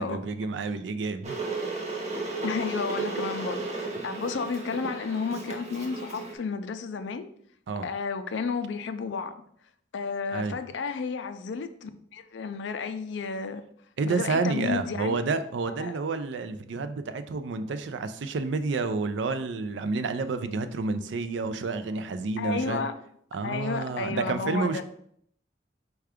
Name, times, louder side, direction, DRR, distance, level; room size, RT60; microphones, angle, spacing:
voice 1, 0.0-1.4 7.7-7.9 10.3-10.6 14.0-22.8 23.3-24.8, right 4 dB, 75° right, 0.4 m, -29 dB
Water / Boiling, 1.2-6.3, right 3 dB, 35° right, 0.7 m, -34 dB
voice 2, 2.4-7.3 7.8-9.3 9.9-13.6 14.1-15.2 15.6-16.0 22.4-22.9 23.4-24.8, left 5 dB, 75° left, 0.4 m, -32 dB
4.5 x 2.3 x 4.8 m
head